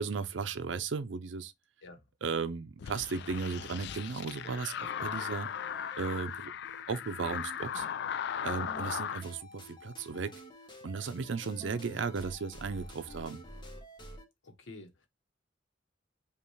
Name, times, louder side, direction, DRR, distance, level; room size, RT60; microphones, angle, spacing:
voice 1, 0.0-1.5 2.2-5.5 6.0-6.5 6.9-7.9 8.4-10.3 10.8-13.4, right 5 dB, 70° right, 0.5 m, -35 dB
sound 1, 2.8-9.2, left 8 dB, 60° left, 0.3 m, -38 dB
sound 2, 3.5-7.9 8.3-14.2, equal, 25° left, 1.0 m, -50 dB
voice 2, 14.4-15.1, left 2 dB, 80° left, 1.0 m, -49 dB
5.3 x 2.4 x 3.1 m
head